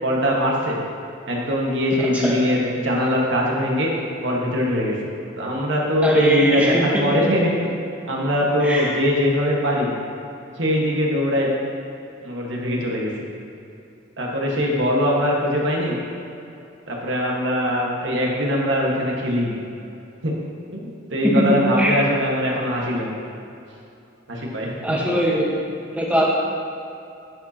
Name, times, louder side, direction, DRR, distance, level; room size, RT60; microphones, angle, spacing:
voice 1, 0.0-0.8 1.3-3.9 4.2-5.0 5.4-7.5 8.1-9.9 10.6-11.5 12.2-13.1 14.2-16.0 16.9-19.6 20.2-20.3 20.7-23.1 24.3-25.0, equal, 65° right, -2 dB, 1.5 m, -22 dB
voice 2, 6.0-7.0 8.6-8.9 21.3-21.5 21.8-21.9 24.8-25.6 25.9-26.3, right 1 dB, 5° right, -4 dB, 1.2 m, -20 dB
10.5 x 7.4 x 2.9 m, 2.7 s
head